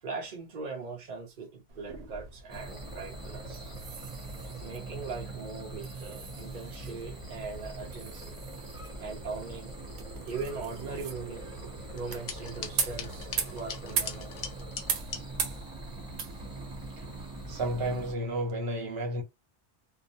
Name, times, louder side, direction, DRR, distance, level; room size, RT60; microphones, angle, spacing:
voice 1, 0.0-3.7 4.6-8.3 9.0-9.7 10.2-14.3, right 4 dB, 50° right, 0.8 m, -40 dB
sound 1, 1.7-18.6, right 6 dB, 85° right, 0.9 m, -40 dB
sound 2, 2.5-18.1, right 2 dB, 5° right, 0.8 m, -42 dB
sound 3, 12.0-15.2, left 6 dB, 55° left, 0.5 m, -41 dB
voice 2, 17.5-19.2, right 1 dB, 65° right, 1.1 m, -32 dB
2.5 x 2.0 x 2.6 m
omnidirectional pair, 1.1 m